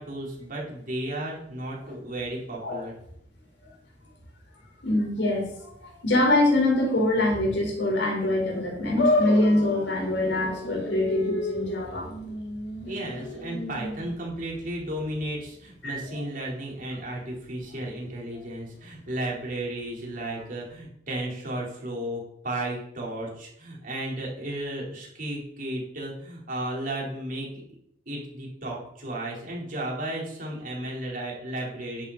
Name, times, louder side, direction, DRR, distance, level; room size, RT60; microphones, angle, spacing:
voice 1, 0.0-2.9 12.9-27.5 28.1-32.0, right 1 dB, 50° right, -3 dB, 4.2 m, -34 dB
voice 2, 4.8-5.7 6.0-12.1 15.8-16.2, left 1 dB, 85° left, -1 dB, 4.7 m, -24 dB
sound 1, 9.0-15.4, left 2 dB, 70° left, 2.4 m, -31 dB
11.0 x 10.5 x 4.3 m, 0.72 s
head